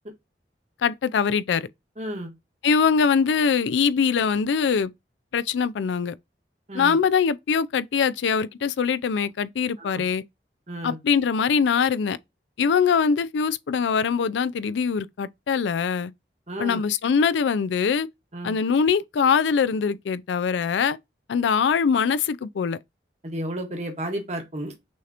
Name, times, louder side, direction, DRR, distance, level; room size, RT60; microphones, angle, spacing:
voice 1, 0.8-1.7 2.6-4.9 5.3-6.1 6.7-10.2 10.8-12.2 12.6-16.1 16.6-18.1 18.4-21.0 21.3-22.8, left 6 dB, 85° left, 0.4 m, -22 dB
voice 2, 2.0-2.3 6.7-7.0 9.8-10.0 10.7-11.0 16.5-16.8 18.3-18.6 23.2-24.7, right 1 dB, 40° right, 1.2 m, -32 dB
6.2 x 2.9 x 2.4 m
head